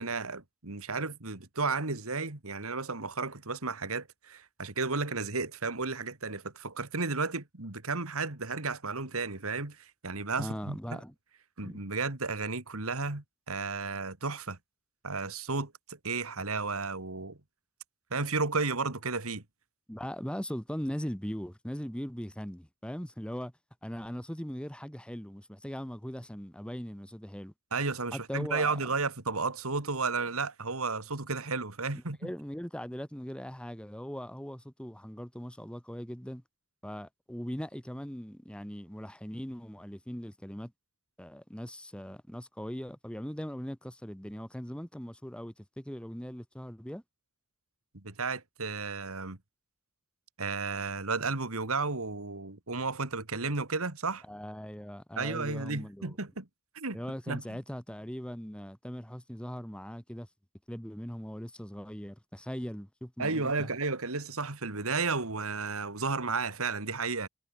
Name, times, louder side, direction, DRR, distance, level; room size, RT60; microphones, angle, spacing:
voice 1, 0.0-11.0 11.6-14.6 15.0-17.4 18.1-19.4 27.7-32.2 47.9-49.4 50.4-54.2 55.2-56.5 56.7-57.0 57.3-57.6 63.2-67.3, right 4 dB, 70° right, 2.4 m, -33 dB
voice 2, 10.4-11.1 11.6-11.8 19.9-23.5 23.8-27.5 28.1-28.8 31.9-36.4 36.8-40.7 41.2-47.0 54.3-56.2 56.9-60.3 60.7-63.7, equal, 5° left, 1.6 m, -40 dB
head